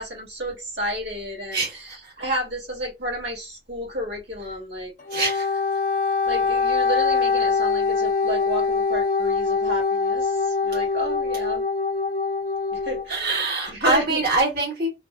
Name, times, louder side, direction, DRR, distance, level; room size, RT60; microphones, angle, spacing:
voice 1, 0.0-1.8 2.2-4.9 6.3-11.6 12.7-13.3 13.7-14.2, equal, 85° right, 1.6 m, -31 dB
voice 2, 1.5-2.1 5.1-5.6 13.1-14.9, right 2 dB, 60° right, 1.4 m, -24 dB
Wind instrument woodwind instrument, 5.0-13.1, left 4 dB, 45° left, 0.4 m, -23 dB
3.0 x 2.0 x 2.3 m
head